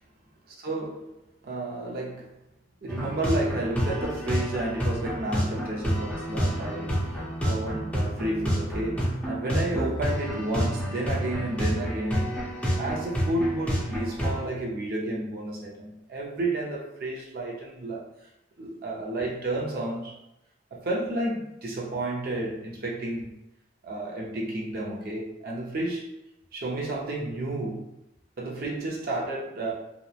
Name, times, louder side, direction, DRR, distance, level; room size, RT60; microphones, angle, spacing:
voice 1, 0.6-1.1 1.4-2.3 2.8-12.3 12.8-18.0 18.6-20.1 20.7-23.3 23.8-26.1 26.5-27.9 28.4-29.7, right 1 dB, 55° right, -3 dB, 0.5 m, -31 dB
sound 1, 2.9-14.4, equal, 10° left, 0.6 m, -29 dB
2.8 x 2.0 x 2.3 m, 0.86 s
head